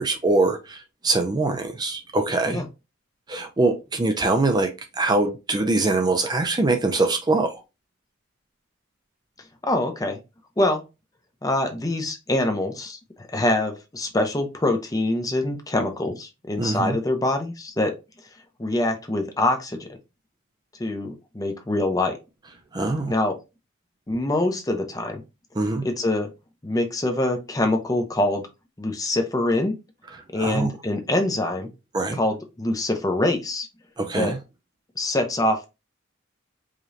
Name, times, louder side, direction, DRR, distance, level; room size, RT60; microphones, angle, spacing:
voice 1, 0.0-2.6 3.3-7.6 16.6-17.0 22.7-23.1 25.6-25.8 30.4-30.7 31.9-32.2 34.0-34.4, right 2 dB, 20° right, 0.5 m, -23 dB
voice 2, 9.6-10.2 10.6-10.8 11.4-17.9 18.6-19.9 20.8-22.2 23.1-23.4 24.1-25.2 25.8-26.3 26.6-28.4 28.8-29.7 30.3-31.7 32.1-33.7 34.1-34.3 35.0-35.7, left 1 dB, 15° left, 0.7 m, -24 dB
4.9 x 2.9 x 2.6 m
head